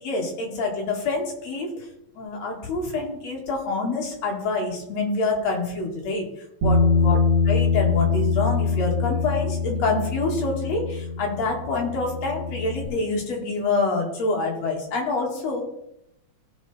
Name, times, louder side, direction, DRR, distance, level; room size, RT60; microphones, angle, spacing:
voice 1, 0.0-1.9 2.2-6.3 6.6-7.2 7.5-15.6, left 3 dB, 60° left, 0 dB, 3.3 m, -26 dB
Bass guitar, 6.6-12.9, left 4 dB, 60° right, 2.1 m, -23 dB
16.5 x 5.6 x 4.3 m, 0.80 s
omnidirectional pair, 3.4 m